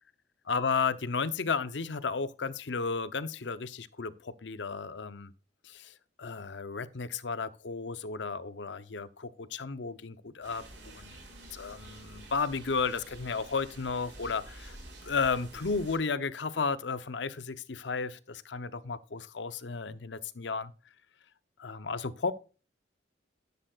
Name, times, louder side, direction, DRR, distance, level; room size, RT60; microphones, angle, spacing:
voice 1, 0.5-5.3 5.6-11.2 11.5-14.8 15.0-20.7 21.6-22.3, left 4 dB, 75° left, 0.8 m, -33 dB
sound 1, 10.4-16.0, right 2 dB, 80° right, 6.3 m, -49 dB
11.5 x 11.0 x 2.4 m
head